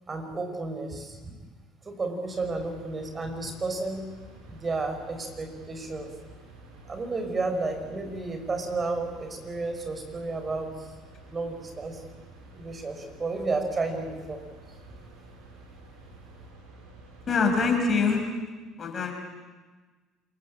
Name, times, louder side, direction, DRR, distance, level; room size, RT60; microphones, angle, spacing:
voice 1, 0.1-1.3 1.8-4.0 4.5-6.1 6.9-10.7 11.3-12.0 12.5-14.4 14.7-14.8, right 3 dB, 30° right, 5 dB, 5.9 m, -32 dB
sound 1, 2.2-18.1, right 2 dB, 80° right, 6.9 m, -50 dB
voice 2, 17.3-18.2 18.8-19.1, left 4 dB, 40° left, 3 dB, 6.8 m, -24 dB
27.5 x 23.0 x 8.8 m, 1.3 s
hypercardioid pair, 65°, 0 cm